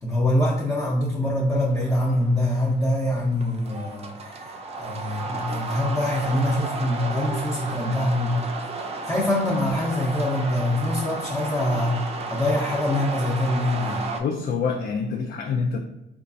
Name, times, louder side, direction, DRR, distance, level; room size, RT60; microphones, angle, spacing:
voice 1, 0.0-8.4 8.7-14.1, left 1 dB, 15° left, -6 dB, 0.7 m, -24 dB
sound 1, 1.5-14.2, right 3 dB, 30° right, 0.4 m, -33 dB
voice 2, 14.1-15.8, left 5 dB, 50° left, 3 dB, 0.4 m, -26 dB
3.7 x 2.3 x 2.6 m, 0.90 s
cardioid pair, 90°, 20 cm